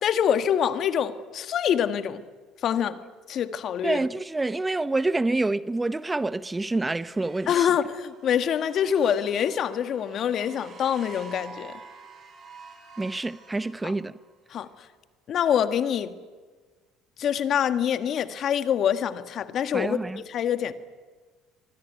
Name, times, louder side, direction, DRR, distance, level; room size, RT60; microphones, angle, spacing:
voice 1, 0.0-2.2 2.6-3.0 3.3-4.0 7.5-11.7 14.5-14.7 15.3-16.1 17.2-20.0 20.3-20.7, left 9 dB, 55° left, 1.7 m, -25 dB
voice 2, 3.8-7.7 13.0-14.2 19.7-20.2, right 2 dB, 15° right, 0.9 m, -27 dB
sound 1, 6.1-14.3, right 4 dB, 45° right, 7.7 m, -48 dB
24.5 x 24.0 x 9.6 m
hypercardioid pair, 75°, 0 cm